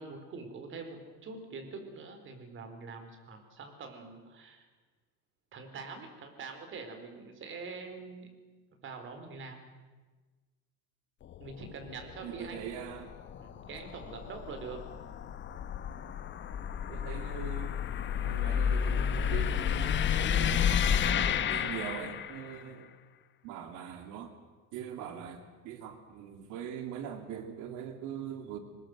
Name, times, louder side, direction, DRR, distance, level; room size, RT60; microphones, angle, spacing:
voice 1, 0.0-4.7 5.5-8.3 8.8-9.6 11.4-12.7 13.3-14.8 15.2-15.3 22.6-22.8, right 4 dB, 40° right, 6 dB, 4.5 m, -44 dB
sound 1, 11.2-22.6, left 8 dB, 35° left, 1.2 m, -31 dB
voice 2, 12.2-13.1 16.9-17.7 18.2-22.9 23.4-24.3 24.7-28.6, right 8 dB, 70° right, 7 dB, 2.9 m, -42 dB
23.5 x 20.5 x 8.0 m, 1.3 s
cardioid pair, 145°, 31 cm